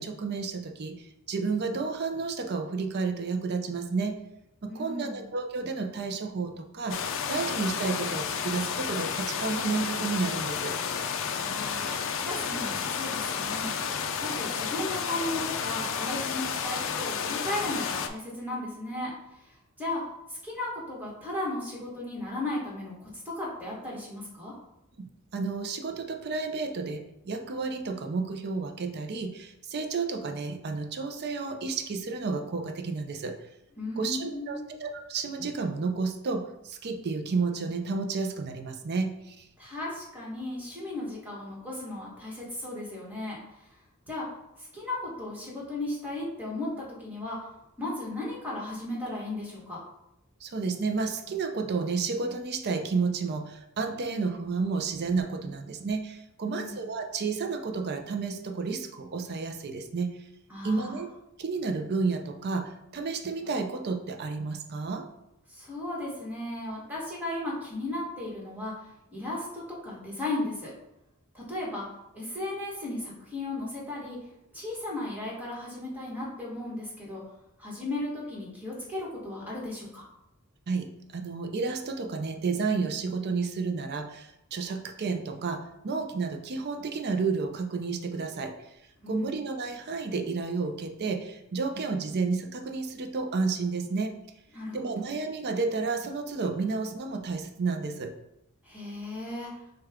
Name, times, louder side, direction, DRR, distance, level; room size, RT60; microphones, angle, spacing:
voice 1, 0.0-4.2 4.6-10.8 25.0-33.4 34.0-39.5 50.4-60.2 60.6-61.1 61.4-65.1 80.7-88.5 89.1-94.1 94.7-98.1, right 4 dB, 45° right, 5 dB, 0.5 m, -31 dB
voice 2, 4.7-5.2 11.3-20.0 20.3-24.5 33.8-34.8 39.6-43.7 44.1-44.3 44.6-47.5 47.8-49.8 56.4-56.8 60.5-61.0 65.5-70.7 71.3-71.9 72.1-74.2 74.5-77.2 77.6-80.0 89.0-89.3 94.5-94.9 98.6-99.5, left 2 dB, 5° right, -5 dB, 1.4 m, -36 dB
sound 1, 6.9-18.1, left 6 dB, 60° left, 0.4 m, -31 dB
6.3 x 2.3 x 3.6 m, 0.85 s
head